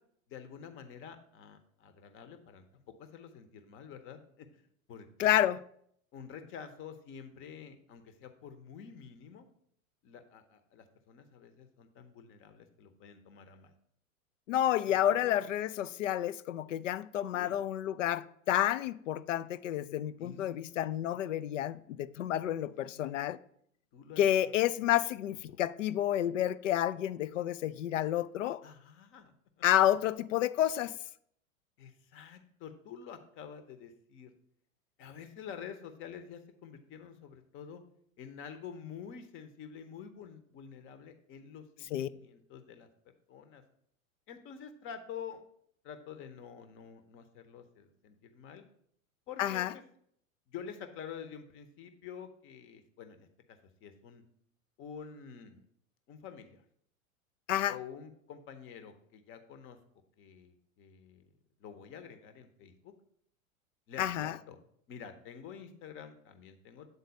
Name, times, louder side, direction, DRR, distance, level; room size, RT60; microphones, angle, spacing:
voice 1, 0.3-4.6 4.9-5.4 6.1-9.5 10.0-13.7 14.8-15.3 17.3-17.6 20.2-21.2 22.7-23.2 23.9-24.5 28.6-29.3 31.8-34.3 35.0-37.8 38.2-42.9 43.3-43.6 44.3-45.4 45.8-48.6 49.3-49.8 50.5-54.2 54.8-55.6 56.1-56.6 57.7-59.8 60.2-61.3 61.6-62.9 63.9-64.6 64.9-66.9, left 7 dB, 30° left, 0.8 m, -48 dB
voice 2, 5.2-5.6 14.5-23.4 24.2-28.6 29.6-30.9 41.9-42.1 49.4-49.7 57.5-57.8 64.0-64.4, left 12 dB, 65° left, 0.5 m, -30 dB
8.2 x 4.0 x 5.3 m
figure-of-eight pair, 95°, 42 cm